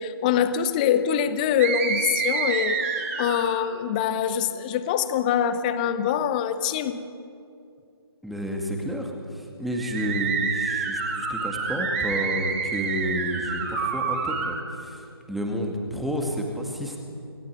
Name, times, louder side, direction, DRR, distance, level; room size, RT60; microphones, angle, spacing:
voice 1, 0.0-7.0, left 8 dB, 20° left, 12 dB, 1.0 m, -24 dB
sound 1, 1.6-3.7 9.7-14.5, right 5 dB, 30° right, 4.5 m, -28 dB
voice 2, 8.2-17.0, equal, ahead, 1 dB, 2.2 m, -30 dB
27.5 x 17.0 x 9.4 m, 2.6 s
figure-of-eight pair, 150°, 14 cm